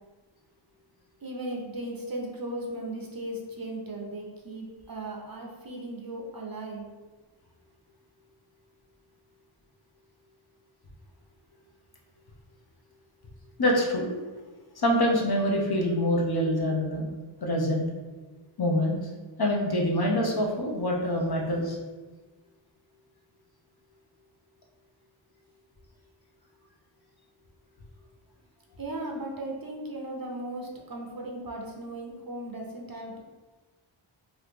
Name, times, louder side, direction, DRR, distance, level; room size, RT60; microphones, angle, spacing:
voice 1, 1.2-6.8 28.8-33.2, right 1 dB, 45° right, 0 dB, 0.6 m, -37 dB
voice 2, 13.6-14.1 14.8-17.0 17.4-17.9 18.6-19.0 19.4-21.8, equal, 50° left, 0 dB, 0.7 m, -25 dB
2.9 x 2.4 x 3.3 m, 1.3 s
wide cardioid pair, 45°, 49 cm